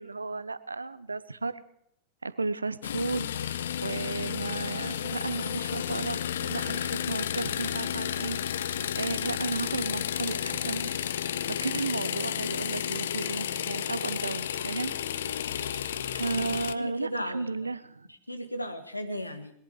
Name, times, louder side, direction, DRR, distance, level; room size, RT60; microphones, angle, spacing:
voice 1, 0.0-1.6 2.2-3.3 3.8-10.9 11.6-14.9 15.5-18.1, right 3 dB, 80° right, 16 dB, 0.6 m, -34 dB
sound 1, 2.8-16.7, left 9 dB, 65° left, 0.5 m, -32 dB
voice 2, 16.2-17.5 18.3-19.5, equal, 85° left, 8 dB, 1.3 m, -36 dB
20.5 x 10.5 x 4.8 m, 0.73 s
figure-of-eight pair, 90°, 0 cm